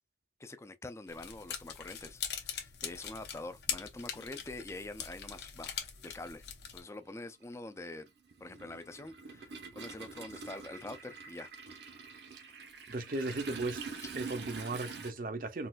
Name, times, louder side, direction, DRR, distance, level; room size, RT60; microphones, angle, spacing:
voice 1, 0.4-5.7 6.0-6.5 6.7-8.1 8.4-11.5 14.0-14.1, left 2 dB, 15° left, 0.4 m, -45 dB
sound 1, 1.1-6.8, left 8 dB, 70° left, 0.9 m, -41 dB
Toilet flush, 4.6-4.7 6.0-6.1 6.5-15.1, right 5 dB, 75° right, 0.9 m, -46 dB
voice 2, 12.9-13.8 14.1-15.7, right 2 dB, 50° right, 0.6 m, -36 dB
4.0 x 2.4 x 2.3 m
head